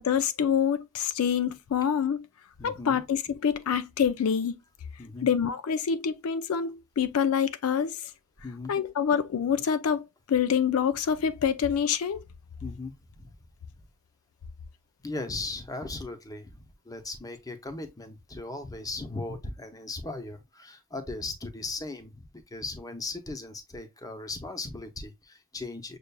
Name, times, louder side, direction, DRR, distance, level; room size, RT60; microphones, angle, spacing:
voice 1, 0.0-2.3 2.6-4.6 5.2-8.0 8.7-12.2, left 7 dB, 80° left, 0.4 m, -26 dB
voice 2, 2.6-3.0 5.0-5.3 8.4-8.7 12.6-13.3 15.0-16.6 16.8-22.2 22.5-26.0, left 2 dB, 15° left, 0.7 m, -38 dB
6.6 x 2.4 x 2.2 m
head